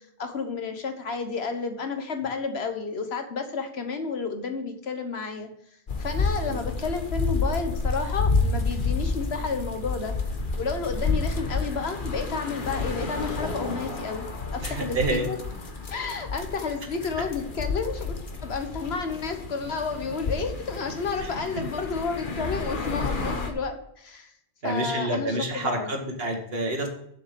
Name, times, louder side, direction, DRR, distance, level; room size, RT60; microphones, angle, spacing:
voice 1, 0.2-5.5 6.0-10.1 10.6-14.3 14.5-15.4 15.9-24.3 24.6-25.9, left 4 dB, 70° left, 6 dB, 1.5 m, -31 dB
sound 1, 5.9-23.5, left 3 dB, 50° left, 1.4 m, -30 dB
voice 2, 14.6-15.3 21.2-21.3 24.6-26.9, right 2 dB, 60° right, 3 dB, 1.9 m, -28 dB
7.5 x 7.0 x 6.9 m, 0.73 s
omnidirectional pair, 1.1 m